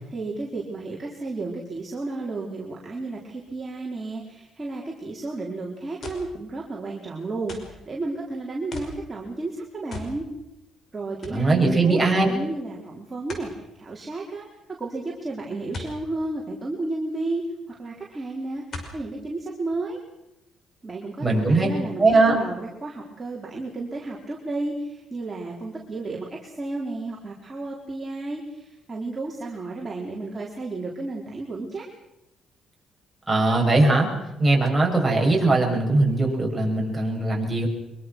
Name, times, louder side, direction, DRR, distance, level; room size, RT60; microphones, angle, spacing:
voice 1, 0.1-10.2 10.9-13.5 13.8-14.4 14.8-17.4 17.8-18.6 18.9-20.0 20.8-31.9, right 2 dB, 25° right, -3 dB, 4.3 m, -32 dB
sound 1, 6.0-6.4 7.5-7.8 8.7-9.0 9.9-10.2 10.6-10.7 11.2-11.5 13.3-13.5 15.7-16.0 17.4-17.5 18.7-19.0 19.7-19.8, left 3 dB, 55° left, 5.6 m, -37 dB
voice 2, 11.3-12.3 21.2-21.7 22.0-22.4 33.3-34.1 34.4-37.7, right 2 dB, 10° right, -1 dB, 7.7 m, -20 dB
24.5 x 23.5 x 6.3 m, 0.93 s
cardioid pair, 90°, 0 cm